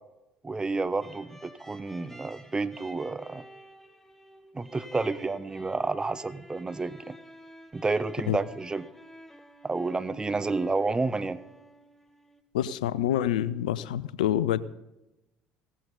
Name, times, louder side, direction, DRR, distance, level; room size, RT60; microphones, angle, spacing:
voice 1, 0.4-3.4 4.5-7.2 7.7-8.9 9.6-11.4, right 3 dB, 20° right, 13 dB, 0.9 m, -30 dB
sound 1, 1.0-12.4, equal, 5° left, 1.9 m, -50 dB
voice 2, 12.5-14.6, left 11 dB, 80° left, 17 dB, 0.6 m, -27 dB
16.5 x 15.0 x 4.0 m, 0.95 s
hypercardioid pair, 60°, 4 cm